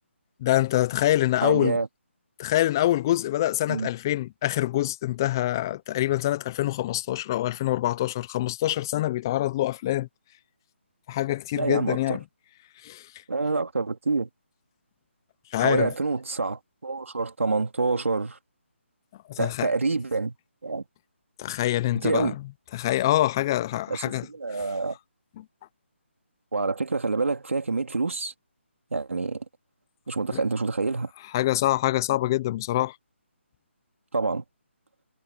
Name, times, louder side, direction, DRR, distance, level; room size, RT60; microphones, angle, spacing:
voice 1, 0.4-1.8 2.4-10.1 11.1-12.2 12.8-13.1 15.5-15.9 19.3-19.7 21.4-22.4 22.7-24.3 25.4-25.5 30.3-30.4 31.3-33.0, left 14 dB, 20° left, 0.4 m, -25 dB
voice 2, 1.4-1.9 3.7-3.9 11.5-12.2 13.3-14.3 15.6-18.4 19.4-20.3 20.6-20.8 21.9-22.4 23.9-25.0 26.5-28.3 28.9-29.4 30.1-31.1 34.1-34.4, right 3 dB, 85° right, 3.2 m, -27 dB
hypercardioid pair, 165°, 7 cm